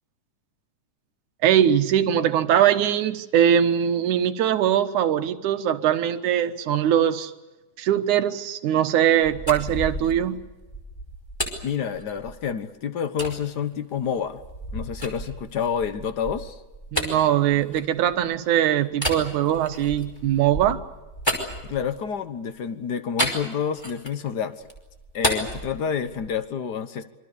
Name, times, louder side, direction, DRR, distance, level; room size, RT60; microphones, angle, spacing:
voice 1, 1.4-7.3 7.8-10.4 16.9-20.8, right 10 dB, 70° right, 9 dB, 2.6 m, -21 dB
sound 1, 9.0-12.6 13.2-13.4 13.9-18.4 18.9-22.2 23.2-24.3 24.6-26.4, equal, 5° left, 4.9 m, -32 dB
voice 2, 11.6-14.4 14.7-16.6 21.7-24.7 25.1-27.0, left 7 dB, 75° left, 11 dB, 0.9 m, -28 dB
27.0 x 25.0 x 6.8 m, 1.1 s
omnidirectional pair, 3.7 m